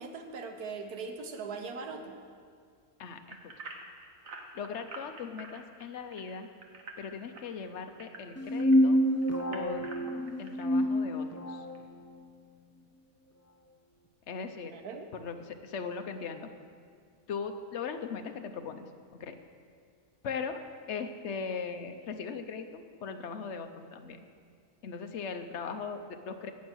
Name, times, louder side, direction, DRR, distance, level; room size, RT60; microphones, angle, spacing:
voice 1, 0.0-2.2 14.7-15.1, right 4 dB, 85° right, 5 dB, 1.5 m, -40 dB
voice 2, 3.0-3.5 4.5-6.5 7.0-9.0 9.5-9.9 10.4-11.7 14.3-14.8 15.1-16.5 17.3-18.9 19.1-19.4 20.2-20.6 20.9-24.2 24.8-26.5, left 5 dB, 55° left, 7 dB, 1.0 m, -39 dB
sound 1, 3.3-8.8 9.2-10.6 11.1-11.2 11.7-11.8, right 3 dB, 65° right, 1.5 m, -47 dB
sound 2, 8.4-11.8, equal, 15° left, 0.5 m, -27 dB
16.5 x 6.5 x 6.3 m, 2.1 s
omnidirectional pair, 1.6 m